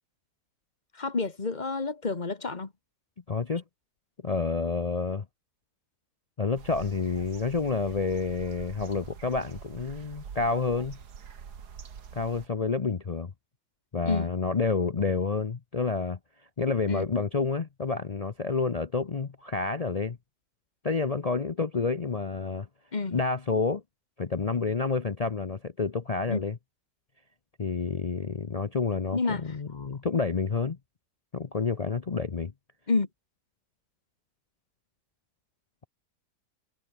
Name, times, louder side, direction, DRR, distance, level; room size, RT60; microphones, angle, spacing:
voice 1, 0.9-2.7 14.0-14.3 16.9-17.0 22.9-23.2 26.3-26.4 29.1-29.4 29.7-29.9 32.9-33.1, left 3 dB, 25° left, 1.7 m, -29 dB
voice 2, 3.3-3.6 4.2-5.2 6.4-11.0 12.1-13.3 13.9-16.2 16.6-20.2 20.8-22.7 23.1-23.8 24.2-26.6 27.6-30.8 31.3-32.5, left 4 dB, 60° left, 0.4 m, -29 dB
sound 1, 6.6-12.5, right 7 dB, 65° right, 2.1 m, -45 dB
omnidirectional pair, 1.9 m